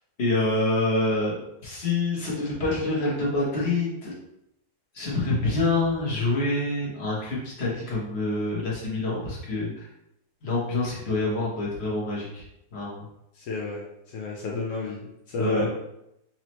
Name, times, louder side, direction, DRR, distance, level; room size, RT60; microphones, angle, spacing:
voice 1, 0.2-4.1 4.9-9.9 10.4-12.4 12.7-13.0 15.4-15.7, left 2 dB, 40° left, -5 dB, 1.2 m, -26 dB
voice 2, 13.3-13.8 14.1-15.7, left 3 dB, 70° left, -3 dB, 0.7 m, -31 dB
4.3 x 2.9 x 3.0 m, 0.83 s
omnidirectional pair, 2.1 m